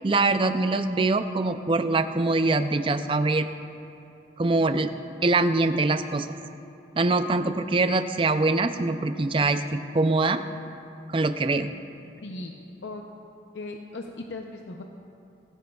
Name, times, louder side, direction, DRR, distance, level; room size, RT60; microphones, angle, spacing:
voice 1, 0.0-3.5 4.4-4.9 5.2-6.3 7.0-10.4 11.1-11.7, right 3 dB, 30° right, 10 dB, 0.4 m, -23 dB
voice 2, 12.2-12.5 12.8-13.0 13.5-14.8, left 2 dB, 75° left, 2 dB, 0.7 m, -37 dB
29.0 x 10.0 x 2.3 m, 2.7 s
head